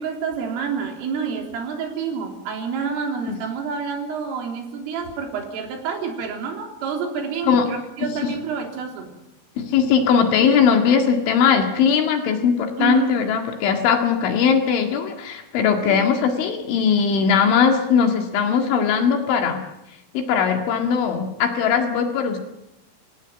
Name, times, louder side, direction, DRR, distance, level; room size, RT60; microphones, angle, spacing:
voice 1, 0.0-9.1 12.8-13.1 15.8-16.0, right 6 dB, 80° right, 3 dB, 6.0 m, -28 dB
voice 2, 8.0-8.3 9.6-19.6 20.1-22.4, left 6 dB, 70° left, 5 dB, 4.2 m, -19 dB
26.0 x 17.0 x 9.0 m, 0.87 s
omnidirectional pair, 5.7 m